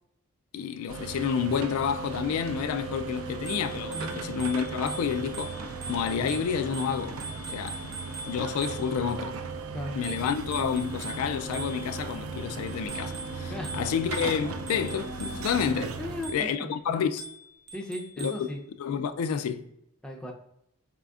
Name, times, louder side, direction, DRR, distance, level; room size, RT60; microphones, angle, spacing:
voice 1, 0.5-5.6 5.9-7.9 8.3-9.4 10.0-16.0 16.3-17.2 18.2-18.3 18.8-19.7, left 7 dB, 80° left, 0.3 m, -29 dB
sound 1, 0.9-16.3, right 4 dB, 70° right, 0.5 m, -37 dB
Bicycle bell, 3.5-9.1 10.0-12.1 12.7-15.6 16.2-16.7 17.2-18.5, right 3 dB, 50° right, 0.8 m, -43 dB
voice 2, 3.9-4.3 9.7-10.0 13.5-13.8 16.0-16.7 17.7-18.6 20.0-20.3, left 1 dB, 5° left, 0.5 m, -36 dB
4.1 x 3.7 x 2.3 m
head